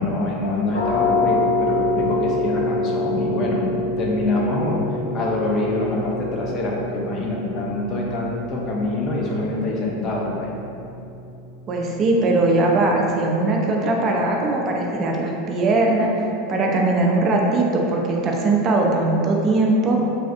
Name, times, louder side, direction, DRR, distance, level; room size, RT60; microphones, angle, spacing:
voice 1, 0.0-3.6 4.0-4.8 5.1-10.5, left 2 dB, 40° left, -2 dB, 0.6 m, -25 dB
sound 1, 0.7-12.2, left 2 dB, 85° left, 0.5 m, -27 dB
voice 2, 11.7-16.1 16.5-20.0, right 2 dB, 35° right, 0 dB, 0.4 m, -20 dB
3.4 x 2.3 x 2.6 m, 2.7 s
figure-of-eight pair, 85°, 0 cm